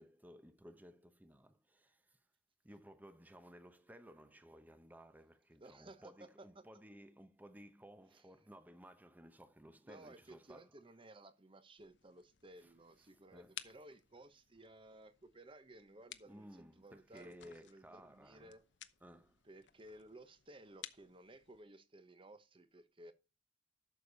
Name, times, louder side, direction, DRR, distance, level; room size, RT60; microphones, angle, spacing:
voice 1, 0.0-2.2 2.6-10.9 12.6-13.9 16.3-18.6 19.0-19.4, equal, 10° right, 0.8 m, -58 dB
voice 2, 5.6-6.6 8.1-8.5 9.8-16.5 16.8-17.4 17.6-18.6 19.4-23.1, right 1 dB, 30° right, 1.0 m, -57 dB
sound 1, 11.8-21.6, left 11 dB, 85° left, 0.9 m, -57 dB
11.5 x 6.8 x 4.1 m
head